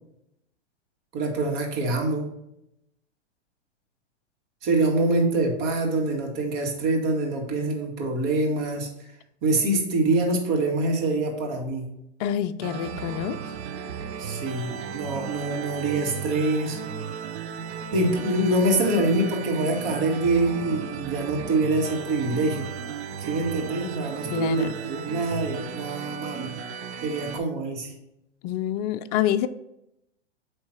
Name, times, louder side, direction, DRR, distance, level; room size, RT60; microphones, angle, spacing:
voice 1, 1.1-2.3 4.6-8.9 9.4-11.9 14.2-16.8 17.9-22.7 23.3-26.5 27.0-27.9, right 2 dB, 50° right, 0 dB, 2.0 m, -25 dB
voice 2, 12.2-13.4 24.3-24.7 28.4-29.5, left 11 dB, 35° left, 10 dB, 0.4 m, -26 dB
sound 1, 12.6-27.4, right 7 dB, 65° right, 0.8 m, -35 dB
8.8 x 3.2 x 4.4 m, 0.81 s
hypercardioid pair, 115°, 35 cm